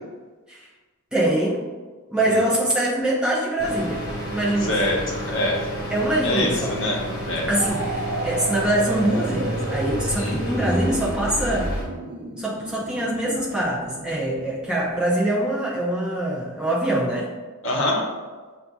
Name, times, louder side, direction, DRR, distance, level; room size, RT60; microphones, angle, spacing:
voice 1, 1.1-1.6 2.1-4.0 4.3-4.8 5.9-6.8 7.5-11.7 12.4-17.3, right 1 dB, 5° right, -5 dB, 0.7 m, -24 dB
sound 1, 3.6-11.8, equal, 45° left, 1.4 m, -30 dB
voice 2, 4.7-5.6 6.2-7.0 7.3-7.4 10.2-10.4 17.6-18.1, left 1 dB, 60° left, -2 dB, 0.9 m, -24 dB
sound 2, 7.5-15.2, right 2 dB, 50° right, 0.7 m, -34 dB
7.4 x 2.6 x 2.3 m, 1.4 s
head